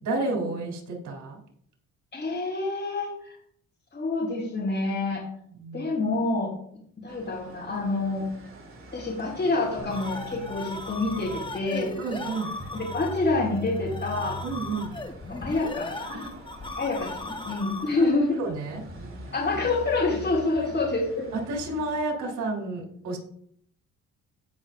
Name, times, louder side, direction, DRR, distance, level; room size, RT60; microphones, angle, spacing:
voice 1, 0.0-1.4 5.6-5.9 11.7-12.5 14.4-14.9 16.1-16.3 18.0-18.8 20.6-20.7 21.3-23.2, right 3 dB, 80° right, 0 dB, 3.4 m, -31 dB
voice 2, 2.1-3.4 3.9-5.2 5.7-6.5 7.0-8.3 8.9-11.9 12.7-14.4 15.3-16.2 16.7-18.4 19.3-21.3, left 3 dB, 40° left, -5 dB, 4.2 m, -27 dB
sound 1, 7.1-22.0, equal, 45° right, 2.9 m, -46 dB
sound 2, 9.8-15.4, equal, 10° right, 3.0 m, -41 dB
sound 3, 9.9-18.1, left 2 dB, 15° left, 1.2 m, -37 dB
16.5 x 6.2 x 2.5 m, 0.65 s
cardioid pair, 90°, 30 cm